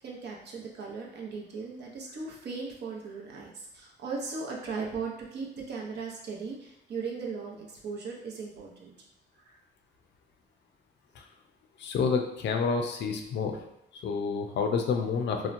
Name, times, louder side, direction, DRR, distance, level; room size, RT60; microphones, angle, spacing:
voice 1, 0.0-8.9 9.4-9.6, right 4 dB, 60° right, -1 dB, 0.7 m, -38 dB
voice 2, 11.8-13.6 14.0-15.5, left 5 dB, 65° left, 4 dB, 0.5 m, -28 dB
2.8 x 2.1 x 2.5 m, 0.81 s
cardioid pair, 90°, 20 cm